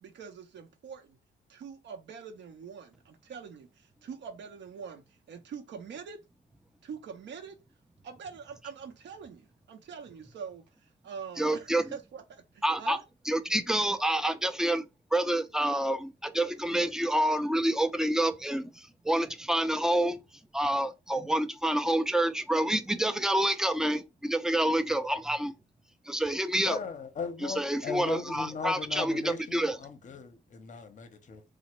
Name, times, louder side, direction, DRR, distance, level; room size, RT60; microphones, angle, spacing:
voice 1, 0.0-1.2 1.5-6.2 6.8-7.6 8.0-13.0, right 6 dB, 65° right, 0.7 m, -44 dB
voice 2, 11.4-11.8 12.6-13.0 13.3-14.9 15.1-20.2 20.5-25.5 26.1-26.8 27.4-29.7, right 1 dB, 5° right, 0.3 m, -28 dB
voice 3, 26.6-31.4, left 5 dB, 40° left, 0.7 m, -38 dB
3.2 x 2.0 x 3.0 m
cardioid pair, 90°, 20 cm